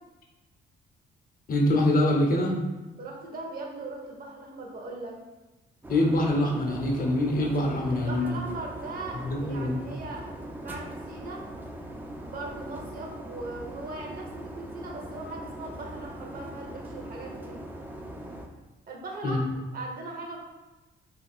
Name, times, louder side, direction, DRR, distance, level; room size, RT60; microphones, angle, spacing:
voice 1, 1.5-2.6 5.9-8.3 9.2-9.8 19.2-19.4, left 1 dB, 45° left, 0 dB, 0.6 m, -24 dB
voice 2, 3.0-5.2 7.9-10.3 10.6-11.4 12.2-17.6 18.9-20.4, right 2 dB, 50° right, -1 dB, 0.7 m, -39 dB
sound 1, 5.8-18.5, right 1 dB, 10° right, 0.3 m, -41 dB
2.4 x 2.2 x 3.5 m, 1.1 s
cardioid pair, 90°, 20 cm